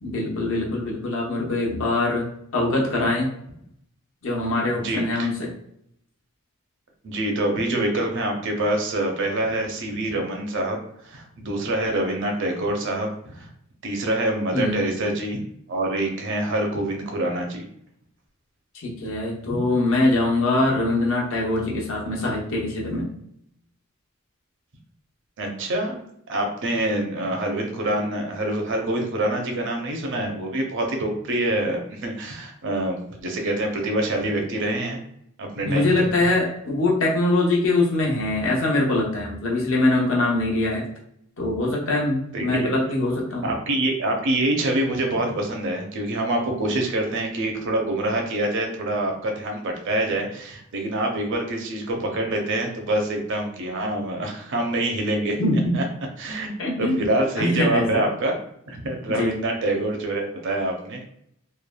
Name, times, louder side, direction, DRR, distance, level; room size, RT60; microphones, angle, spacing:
voice 1, 0.0-2.3 2.5-3.3 4.2-5.5 14.5-14.8 18.7-23.1 35.6-40.9 41.4-43.5 55.4-55.8 56.6-57.1 57.4-57.9 59.1-59.4, left 2 dB, 60° left, -2 dB, 0.8 m, -23 dB
voice 2, 4.8-5.3 7.0-10.8 11.0-13.5 13.8-15.4 15.7-17.6 19.5-19.6 25.4-35.0 35.4-36.1 42.3-42.8 43.4-55.4 55.7-55.8 56.2-56.5 56.8-58.4 58.7-61.0, right 1 dB, 55° right, 2 dB, 0.6 m, -26 dB
3.2 x 2.2 x 2.2 m, 0.72 s
head